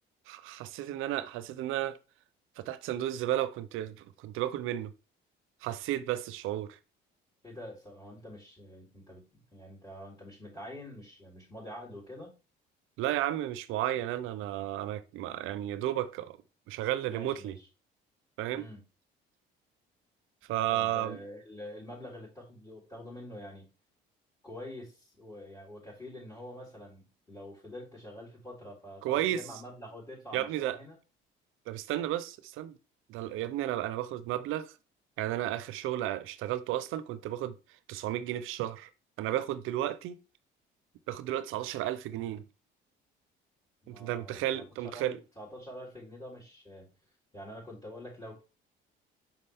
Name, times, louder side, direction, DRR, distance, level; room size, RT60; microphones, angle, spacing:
voice 1, 0.3-2.0 2.6-4.9 5.6-6.8 13.0-16.4 16.7-17.6 18.4-18.7 20.5-21.2 29.0-29.4 30.3-30.8 31.7-32.8 33.1-34.7 35.2-37.6 37.9-38.9 39.2-40.2 41.1-42.5 43.9-45.2, right 13 dB, 80° right, 0.6 m, -33 dB
voice 2, 7.4-12.4 17.1-17.7 18.5-18.8 20.6-23.7 24.4-31.0 43.8-46.9 47.3-48.4, left 1 dB, 20° left, 3.8 m, -46 dB
6.0 x 5.5 x 3.4 m
supercardioid pair, 85°, 21 cm